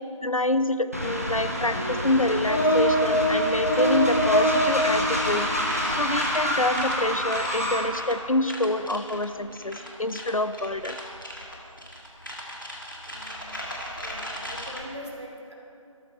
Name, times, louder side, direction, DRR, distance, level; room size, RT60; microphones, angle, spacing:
voice 1, 0.2-5.5 6.0-11.0, left 2 dB, 75° left, 12 dB, 0.7 m, -26 dB
Train, 0.9-8.0, equal, 25° right, 1.1 m, -28 dB
sound 1, 1.7-5.3 5.7-5.9 6.2-6.4 6.7-6.9 7.3-7.5 7.9-8.1 8.5-14.8, equal, 35° left, 1.6 m, -27 dB
voice 2, 13.1-13.4 14.0-15.5, equal, 55° right, -2 dB, 2.7 m, -41 dB
13.0 x 12.5 x 4.6 m, 2.7 s
figure-of-eight pair, 175°, 17 cm